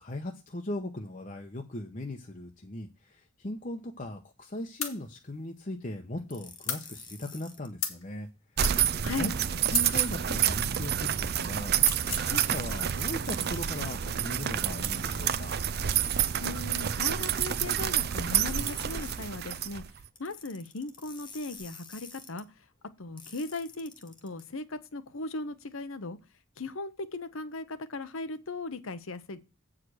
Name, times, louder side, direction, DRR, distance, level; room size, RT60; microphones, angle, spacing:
voice 1, 0.0-8.3 8.6-9.4 9.7-15.6, left 1 dB, 35° left, 0.9 m, -39 dB
sound 1, 4.8-5.0 6.7-6.9 7.8-8.0 8.6-8.8 9.6-10.2 11.8-12.3, left 7 dB, 90° left, 2.3 m, -33 dB
sound 2, 6.3-7.7 8.7-10.4 11.7-14.0 14.8-17.1 18.3-19.3 20.2-22.4 23.2-24.4, left 4 dB, 20° left, 1.3 m, -50 dB
sound 3, 8.6-20.1, right 9 dB, 45° right, 0.5 m, -28 dB
voice 2, 9.0-9.3 16.4-19.8 20.2-22.5 23.0-26.2 26.6-29.4, left 2 dB, 70° left, 0.9 m, -37 dB
8.6 x 5.0 x 6.2 m
head